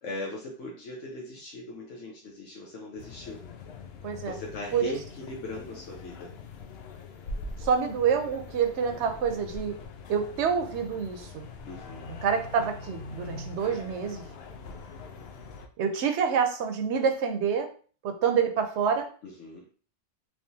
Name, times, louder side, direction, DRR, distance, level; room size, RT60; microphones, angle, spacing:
voice 1, 0.0-3.4 4.3-6.3 11.7-12.1 19.2-19.6, left 2 dB, 80° left, -2 dB, 1.1 m, -39 dB
sound 1, 3.0-15.7, left 3 dB, 65° left, 0.7 m, -43 dB
voice 2, 4.0-4.4 4.7-4.9 7.6-9.8 10.1-11.5 12.1-14.2 15.8-17.7 18.0-19.1, right 6 dB, 70° right, 6 dB, 0.9 m, -27 dB
3.6 x 3.0 x 2.6 m, 0.41 s
omnidirectional pair, 1.2 m